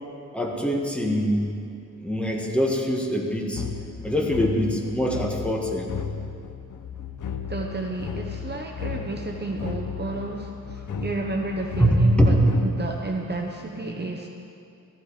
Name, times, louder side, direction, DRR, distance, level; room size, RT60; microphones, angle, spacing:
voice 1, 0.3-1.4 2.0-3.7 4.0-5.9 11.8-12.4, equal, 5° left, -2 dB, 2.0 m, -23 dB
sound 1, 3.6-13.0, left 6 dB, 70° left, 1.1 m, -34 dB
voice 2, 7.5-14.3, right 2 dB, 30° right, 1 dB, 1.0 m, -31 dB
17.5 x 14.5 x 5.0 m, 2.5 s
wide cardioid pair, 115°, 32 cm